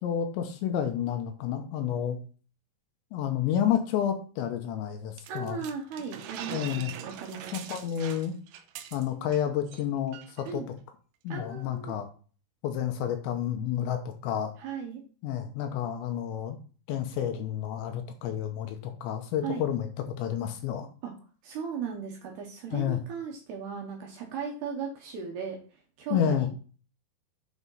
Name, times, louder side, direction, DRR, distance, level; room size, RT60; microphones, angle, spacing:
voice 1, 0.0-2.2 3.1-5.6 6.5-6.9 7.5-8.4 8.9-10.6 11.2-12.1 12.6-14.5 15.2-16.6 16.9-19.9 20.2-20.9 22.7-23.0 26.1-26.5, left 9 dB, 80° left, 6 dB, 3.0 m, -30 dB
sound 1, 5.2-9.4 9.7-9.8 10.1-10.5, right 10 dB, 85° right, 2.3 m, -42 dB
voice 2, 5.3-7.6 10.5-10.7 11.3-12.0 14.6-15.0 19.4-19.6 21.0-21.1 21.4-26.5, right 6 dB, 70° right, 0 dB, 2.9 m, -37 dB
8.3 x 4.3 x 5.5 m, 0.38 s
omnidirectional pair, 5.5 m